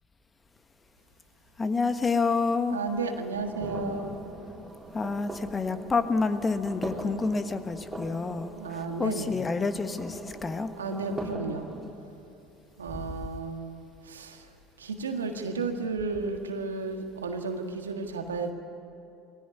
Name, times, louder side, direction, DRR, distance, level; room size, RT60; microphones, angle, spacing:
voice 1, 1.6-2.8 4.9-8.5 9.0-10.7 12.9-13.0, left 4 dB, 25° left, 9 dB, 1.4 m, -28 dB
voice 2, 2.7-4.2 8.5-9.4 10.8-11.7 12.8-14.5 14.8-18.5, right 4 dB, 90° right, 5 dB, 1.6 m, -33 dB
sound 1, 3.3-11.9, right 1 dB, 10° right, 4.3 m, -40 dB
20.5 x 16.5 x 9.7 m, 2.7 s
hypercardioid pair, 70°, 0 cm